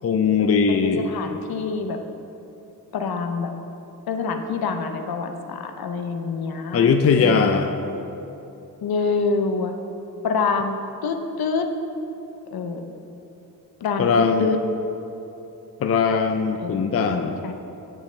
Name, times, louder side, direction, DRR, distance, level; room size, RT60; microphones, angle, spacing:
voice 1, 0.0-1.1 6.7-7.7 14.0-14.5 15.8-17.4, left 5 dB, 40° left, 6 dB, 0.5 m, -20 dB
voice 2, 0.7-2.0 2.9-3.5 4.1-6.9 7.2-7.5 8.8-9.7 10.2-11.7 12.5-12.9 13.8-14.6 16.6-17.0 17.4-17.5, left 4 dB, 65° left, 6 dB, 0.8 m, -26 dB
9.2 x 8.3 x 3.3 m, 2.9 s
cardioid pair, 75°, 39 cm